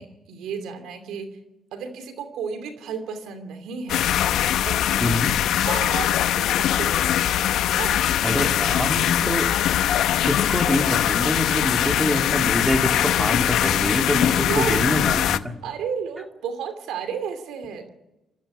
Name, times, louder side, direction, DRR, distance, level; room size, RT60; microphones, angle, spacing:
voice 1, 0.0-1.4 1.7-4.1 4.4-5.4 5.6-7.4 7.7-8.1 14.2-15.0 15.6-17.9, right 7 dB, 85° right, 9 dB, 2.7 m, -33 dB
sound 1, 3.9-15.4, left 11 dB, 80° left, 0.8 m, -22 dB
voice 2, 5.0-5.4 8.2-9.6 10.2-15.5, left 1 dB, 5° right, 4 dB, 3.2 m, -25 dB
22.5 x 15.0 x 9.8 m, 1.0 s
cardioid pair, 90°, 0 cm